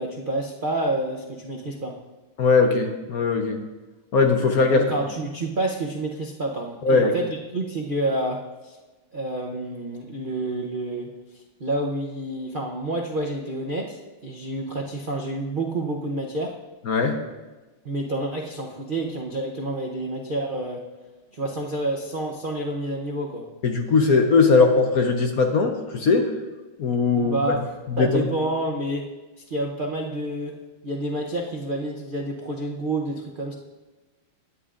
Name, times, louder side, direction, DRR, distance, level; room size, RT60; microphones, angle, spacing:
voice 1, 0.0-1.9 4.7-8.8 9.1-11.1 11.6-16.5 17.8-20.8 21.3-23.5 27.2-29.0 29.5-30.6 30.8-33.5, right 1 dB, 65° right, 0 dB, 0.5 m, -28 dB
voice 2, 2.4-3.6 4.1-4.8 6.8-7.1 16.9-17.2 23.6-26.3 26.8-27.4 27.9-28.2, left 4 dB, 55° left, 4 dB, 1.1 m, -19 dB
16.5 x 9.9 x 2.5 m, 1.2 s
omnidirectional pair, 2.2 m